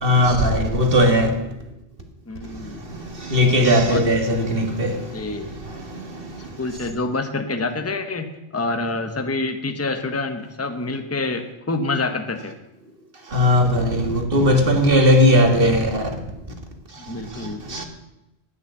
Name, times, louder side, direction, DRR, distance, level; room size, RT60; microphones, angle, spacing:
voice 1, 0.0-1.4 2.5-5.2 5.7-6.5 13.3-16.2 17.3-17.8, equal, 50° right, 2.0 m, -19 dB
voice 2, 2.3-2.8 3.9-4.1 5.1-5.5 6.6-12.6 17.0-17.6, left 3 dB, 15° left, 0.9 m, -27 dB
10.0 x 9.2 x 8.2 m
omnidirectional pair, 1.2 m